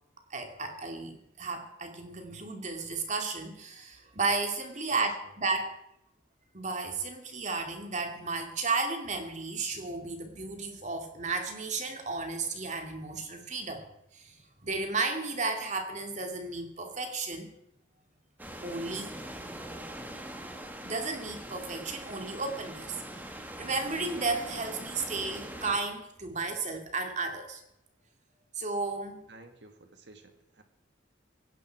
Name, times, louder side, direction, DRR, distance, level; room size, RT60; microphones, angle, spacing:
voice 1, 0.3-5.1 5.4-5.8 6.5-14.4 14.6-17.5 18.6-19.1 20.8-27.6 28.5-29.2, right 3 dB, 35° right, 5 dB, 2.3 m, -33 dB
sound 1, 18.4-25.8, right 1 dB, 10° right, 1.5 m, -42 dB
voice 2, 29.3-30.6, right 2 dB, 60° right, 7 dB, 1.9 m, -53 dB
18.0 x 16.5 x 4.7 m, 0.81 s
head